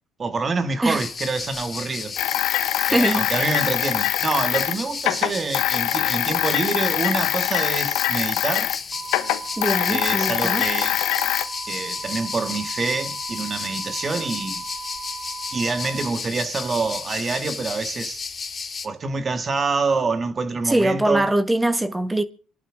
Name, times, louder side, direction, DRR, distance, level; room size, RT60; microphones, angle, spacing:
voice 1, 0.2-2.2 2.9-8.7 9.9-11.0 11.7-14.7 15.5-18.2 18.8-21.3, right 4 dB, 35° right, 2.0 m, -26 dB
sound 1, 0.9-18.9, left 5 dB, 35° left, 2.1 m, -33 dB
sound 2, 2.2-8.8 9.0-11.4, left 14 dB, 80° left, 1.2 m, -23 dB
voice 2, 2.8-3.3 9.6-10.7 20.6-22.2, right 1 dB, 10° right, 1.6 m, -22 dB
sound 3, 8.9-16.1, right 6 dB, 75° right, 1.5 m, -37 dB
27.5 x 11.5 x 3.8 m
supercardioid pair, 75°, 0 cm